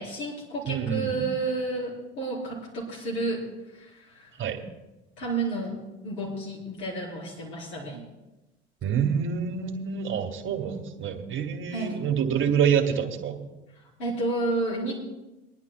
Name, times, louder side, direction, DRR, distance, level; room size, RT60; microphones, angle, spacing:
voice 1, 0.0-3.4 3.7-4.3 5.2-8.0 11.7-12.0 13.8-14.9, right 2 dB, 80° left, -6 dB, 4.5 m, -31 dB
voice 2, 0.7-1.2 4.4-4.6 8.8-13.4, right 7 dB, 40° right, 4 dB, 1.6 m, -27 dB
24.5 x 11.0 x 2.3 m, 1.0 s
hypercardioid pair, 65°, 33 cm